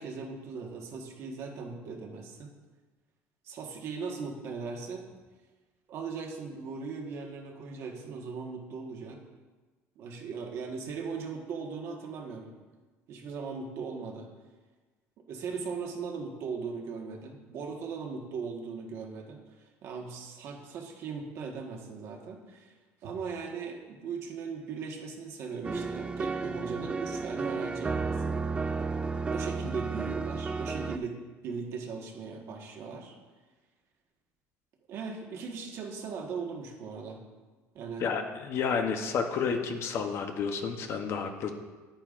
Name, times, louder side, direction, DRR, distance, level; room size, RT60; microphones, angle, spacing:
voice 1, 0.0-2.5 3.4-5.0 5.9-9.2 9.9-12.5 13.1-14.3 15.3-19.4 19.8-22.7 23.0-28.4 29.3-31.2 31.4-33.1 34.9-37.2 37.7-38.1, right 5 dB, 55° right, 1 dB, 1.4 m, -38 dB
sound 1, 25.6-31.0, right 4 dB, 20° right, 0.3 m, -32 dB
voice 2, 38.0-41.5, left 6 dB, 50° left, 5 dB, 0.8 m, -30 dB
9.5 x 8.8 x 2.5 m, 1.3 s
cardioid pair, 135°, 6 cm